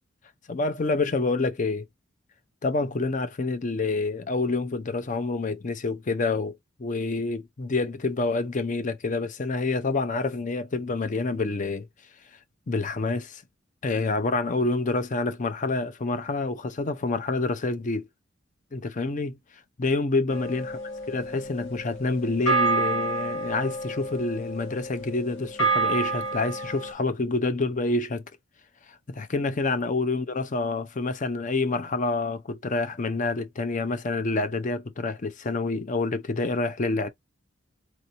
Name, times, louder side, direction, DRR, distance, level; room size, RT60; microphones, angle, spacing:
voice 1, 0.5-1.8 2.6-11.9 12.7-13.4 13.8-18.1 18.7-19.4 19.8-20.8 21.1-28.2 29.1-37.1, left 3 dB, 40° left, 0.6 m, -27 dB
sound 1, 20.3-26.9, right 4 dB, 85° left, 2.2 m, -29 dB
4.3 x 2.6 x 2.8 m
head